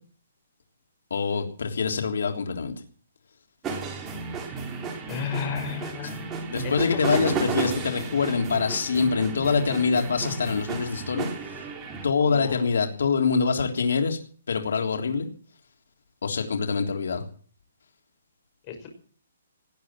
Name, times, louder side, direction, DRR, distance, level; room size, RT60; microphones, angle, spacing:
voice 1, 1.1-2.7 6.5-11.3 12.0-14.2 14.5-15.3 16.2-17.2, left 5 dB, 80° left, 4 dB, 3.4 m, -25 dB
sound 1, 3.6-12.1, right 4 dB, 15° right, 3.2 m, -33 dB
voice 2, 5.1-6.3 6.6-7.0 12.2-12.6 18.7-18.9, left 7 dB, 25° left, 4 dB, 5.8 m, -33 dB
19.0 x 9.5 x 7.6 m, 0.43 s
hypercardioid pair, 165°, 0 cm